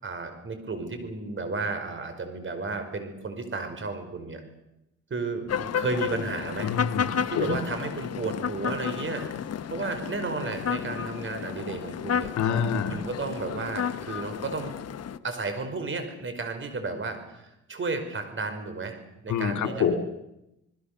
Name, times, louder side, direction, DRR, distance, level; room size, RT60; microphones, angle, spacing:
voice 1, 0.0-4.4 5.1-6.7 7.3-9.3 9.7-12.3 12.9-14.7 15.2-19.0 19.2-20.0, right 3 dB, 40° right, 7 dB, 5.3 m, -33 dB
sound 1, 5.5-15.2, left 8 dB, 55° left, 1.2 m, -32 dB
voice 2, 6.6-7.6 12.4-13.0 19.3-19.9, left 7 dB, 75° left, 7 dB, 3.4 m, -27 dB
28.5 x 20.0 x 6.9 m, 0.87 s
cardioid pair, 90°, 30 cm